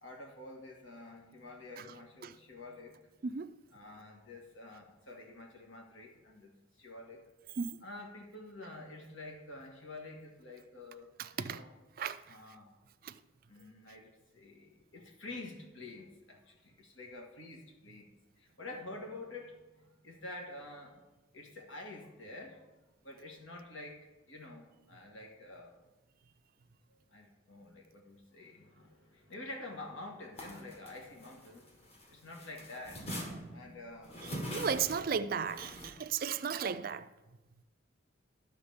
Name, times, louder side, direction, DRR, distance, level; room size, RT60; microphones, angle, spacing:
voice 1, 0.0-3.1 3.7-6.5 6.8-7.2 7.8-11.1 11.4-11.7 12.3-12.7 13.5-18.1 18.4-21.0 21.3-25.7 26.9-33.1 33.5-34.2 34.9-35.3, left 2 dB, 75° left, 1.7 m, -48 dB
voice 2, 3.2-3.6 7.6-7.9 11.2-11.6 12.0-12.4 13.0-13.2 34.5-37.1, right 6 dB, 45° right, 0.4 m, -35 dB
sound 1, 30.4-32.1 32.3-35.9, equal, 30° left, 1.3 m, -43 dB
11.0 x 4.0 x 7.1 m
head